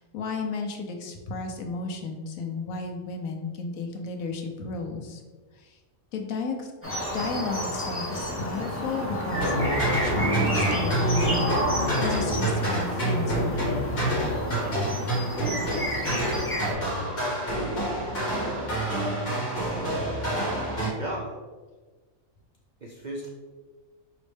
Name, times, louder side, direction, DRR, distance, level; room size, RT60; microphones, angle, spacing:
voice 1, 0.0-5.2 5.5-5.8 6.1-6.7 7.1-11.5 12.0-13.7, left 4 dB, 85° left, 4 dB, 1.1 m, -33 dB
sound 1, 6.8-16.7, equal, 10° left, 1.0 m, -30 dB
sound 2, 9.3-20.9, right 1 dB, 45° left, 1.7 m, -27 dB
voice 2, 19.8-21.3 22.8-23.3, right 1 dB, 70° right, -1 dB, 0.4 m, -37 dB
5.1 x 3.1 x 3.2 m, 1.4 s
omnidirectional pair, 1.4 m